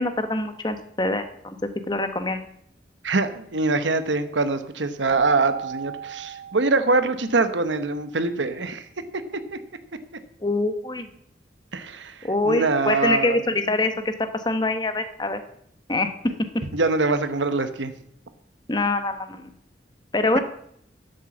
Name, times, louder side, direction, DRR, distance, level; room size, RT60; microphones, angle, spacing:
voice 1, 0.0-1.6 1.9-2.4 10.4-11.1 12.2-15.4 15.9-16.1 18.7-19.5 20.1-20.4, left 2 dB, 25° left, 9 dB, 1.0 m, -24 dB
voice 2, 3.0-8.8 9.5-9.6 11.7-13.4 16.7-17.9 20.3-20.4, right 3 dB, 90° right, 10 dB, 1.0 m, -24 dB
Keyboard (musical), 5.1-7.7, right 7 dB, 60° right, 0.5 m, -35 dB
11.0 x 8.0 x 7.1 m, 0.70 s
head